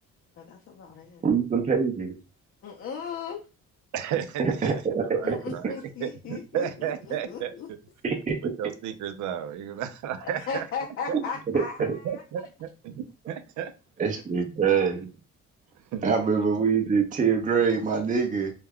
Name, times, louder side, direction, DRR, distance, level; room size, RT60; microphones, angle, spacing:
voice 1, 0.4-1.3 2.6-3.4 5.2-7.7 10.2-12.2, left 6 dB, 45° left, 0.6 m, -37 dB
voice 2, 1.2-2.2 4.4-5.4 8.0-8.3 11.1-11.2 11.5-11.6 14.0-15.1 16.0-18.5, right 6 dB, 25° right, 0.6 m, -24 dB
voice 3, 3.9-7.8 8.4-10.7 11.1-11.2 12.0-13.7 15.9-16.1, right 9 dB, 75° right, 0.5 m, -33 dB
2.3 x 2.2 x 3.4 m
cardioid pair, 90°, 30 cm